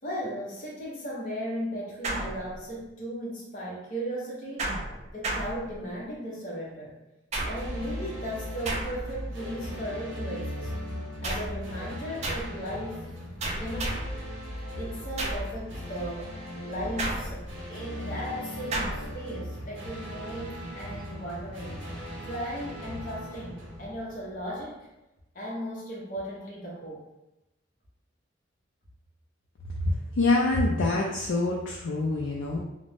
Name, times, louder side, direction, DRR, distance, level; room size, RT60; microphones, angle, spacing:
voice 1, 0.0-4.7 5.1-6.9 7.4-10.7 11.2-13.1 13.4-14.0 14.8-16.3 16.6-21.8 22.2-24.9 25.3-27.0, equal, 45° left, -5 dB, 0.9 m, -36 dB
sound 1, 2.0-2.9 4.6-6.1 7.3-7.9 8.7-9.3 11.2-11.7 12.2-12.6 13.4-14.2 15.2-15.6 17.0-17.6 18.7-19.1, right 2 dB, 35° right, 0.4 m, -33 dB
sound 2, 7.5-24.6, equal, 85° right, 0.8 m, -38 dB
voice 2, 30.2-32.6, left 2 dB, 75° left, -2 dB, 0.4 m, -25 dB
2.5 x 2.0 x 3.3 m, 0.95 s
head